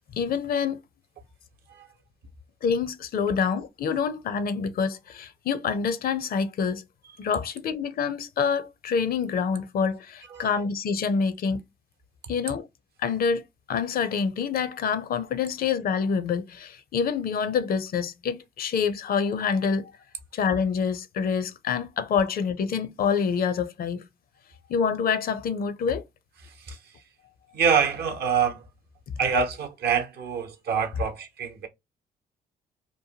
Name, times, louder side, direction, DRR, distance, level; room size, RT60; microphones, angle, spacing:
voice 1, 0.1-0.8 2.6-6.8 7.2-11.6 12.3-12.7 13.0-13.4 13.7-19.9 20.3-24.0 24.7-26.0, left 6 dB, 60° left, 0.5 m, -26 dB
voice 2, 26.4-27.0 27.5-28.7 29.2-31.7, right 6 dB, 70° right, 0.8 m, -26 dB
2.9 x 2.2 x 2.7 m
supercardioid pair, 65°, 17 cm